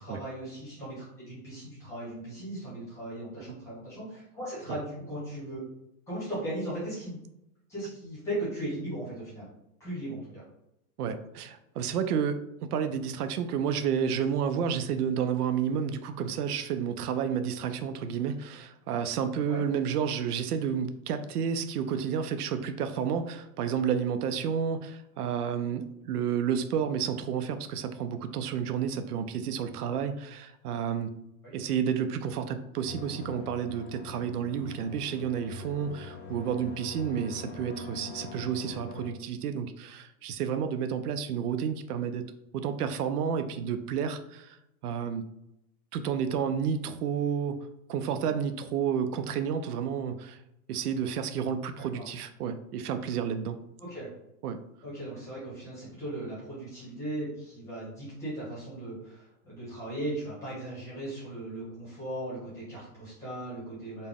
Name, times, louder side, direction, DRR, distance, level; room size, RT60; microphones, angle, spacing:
voice 1, 0.0-5.6 6.1-7.2 7.7-9.5 9.8-10.4 19.5-19.6 31.4-31.6 51.9-52.1 53.8-54.1 54.8-64.1, right 1 dB, 5° left, -8 dB, 0.8 m, -37 dB
voice 2, 11.0-12.4 12.7-31.1 31.5-42.2 42.5-45.2 45.9-47.6 47.9-50.4 50.7-53.6 54.4-54.6, right 7 dB, 80° right, 9 dB, 0.6 m, -31 dB
sound 1, 32.9-39.1, left 2 dB, 35° left, 0.5 m, -42 dB
4.0 x 2.1 x 3.5 m, 0.84 s
supercardioid pair, 175°, 45 cm